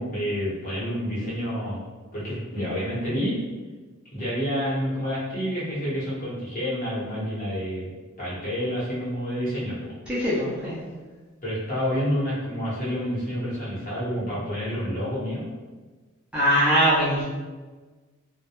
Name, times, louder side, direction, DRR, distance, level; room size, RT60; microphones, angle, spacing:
voice 1, 0.0-1.8 2.1-3.4 4.1-7.9 8.2-9.9 11.4-15.5, equal, 40° left, -8 dB, 1.0 m, -28 dB
voice 2, 10.1-10.8 16.3-17.2, equal, 5° right, -10 dB, 0.5 m, -21 dB
2.2 x 2.1 x 2.8 m, 1.3 s
head